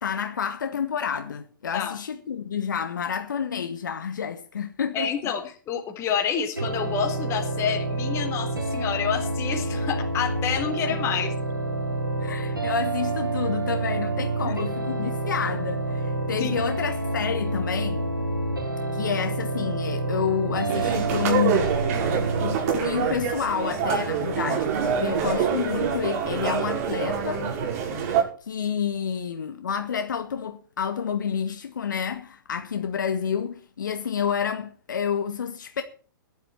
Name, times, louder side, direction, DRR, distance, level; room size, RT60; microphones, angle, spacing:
voice 1, 0.0-5.1 11.0-11.1 12.2-18.1 18.9-21.7 22.1-27.5 28.5-35.8, left 7 dB, 65° left, 2.0 m, -29 dB
voice 2, 4.9-11.3 14.5-14.6 16.4-16.6, left 7 dB, 25° left, 3.9 m, -28 dB
sound 1, 6.6-22.6, right 2 dB, 90° right, 6.1 m, -28 dB
sound 2, 20.7-28.2, right 6 dB, 45° right, 5.7 m, -26 dB
18.0 x 12.0 x 4.4 m
figure-of-eight pair, 115°, 11 cm